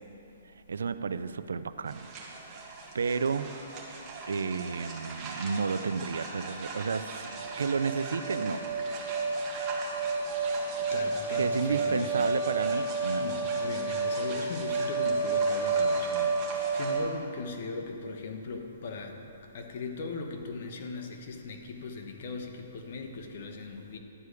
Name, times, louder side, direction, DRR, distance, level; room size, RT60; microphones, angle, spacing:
voice 1, 0.7-2.1 2.6-3.5 4.3-8.7 11.4-13.3, right 5 dB, 85° right, 12 dB, 0.4 m, -32 dB
sound 1, 1.9-17.0, right 3 dB, 20° right, 1.8 m, -32 dB
voice 2, 10.8-12.3 13.2-19.3 19.5-24.0, left 3 dB, 55° left, 3 dB, 1.2 m, -39 dB
11.5 x 4.8 x 8.2 m, 2.9 s
hypercardioid pair, 150°, 0 cm